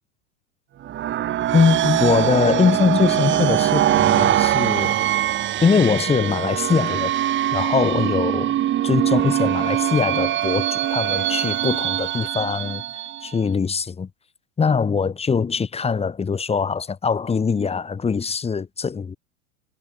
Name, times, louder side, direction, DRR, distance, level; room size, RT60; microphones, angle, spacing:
sound 1, 0.8-13.4, right 12 dB, 25° right, 1.0 m, -22 dB
voice 1, 1.5-5.1 5.6-8.5 8.8-12.8 13.2-14.1 14.6-19.2, left 5 dB, 15° left, 1.2 m, -22 dB
hypercardioid pair, 105°, 42 cm